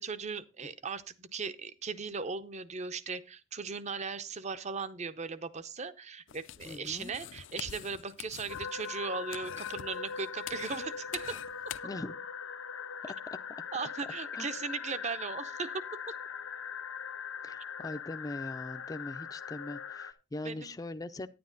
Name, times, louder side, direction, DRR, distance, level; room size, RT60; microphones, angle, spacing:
voice 1, 0.0-11.4 13.7-16.1 20.4-20.8, right 5 dB, 35° right, 0.7 m, -38 dB
sound 1, 6.3-11.8, left 10 dB, 65° left, 0.5 m, -46 dB
voice 2, 6.6-7.1 11.8-12.1 13.0-13.4 14.3-14.5 17.4-21.3, left 2 dB, 20° left, 0.5 m, -41 dB
sound 2, 8.5-20.1, left 7 dB, 85° left, 0.9 m, -41 dB
9.9 x 9.5 x 3.8 m
head